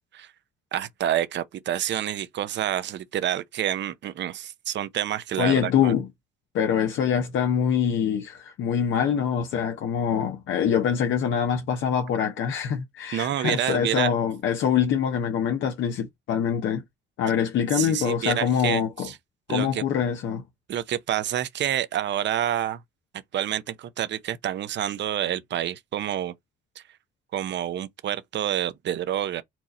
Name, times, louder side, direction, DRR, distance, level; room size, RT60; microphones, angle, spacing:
voice 1, 0.7-5.9 13.1-14.1 17.7-19.2 19.5-19.8 20.7-22.8 23.3-26.3 26.8-26.9 27.3-29.4, right 11 dB, 65° right, 0.7 m, -28 dB
voice 2, 5.4-6.1 6.5-16.8 17.2-19.1 19.5-20.4, left 8 dB, 75° left, 0.8 m, -24 dB
4.5 x 2.6 x 4.1 m
cardioid pair, 90°, 20 cm